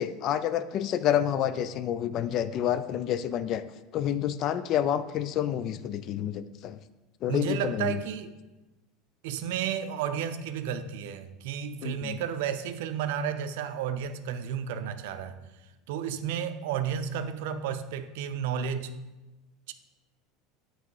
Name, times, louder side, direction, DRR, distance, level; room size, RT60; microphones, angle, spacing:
voice 1, 0.0-3.6 3.9-6.8 7.2-8.0 11.8-12.2, left 10 dB, 50° left, 0.3 m, -28 dB
voice 2, 7.3-8.4 9.2-15.4 15.9-18.9 19.7-19.8, right 8 dB, 75° right, 0.4 m, -32 dB
8.2 x 3.1 x 4.6 m
supercardioid pair, 120°, 0 cm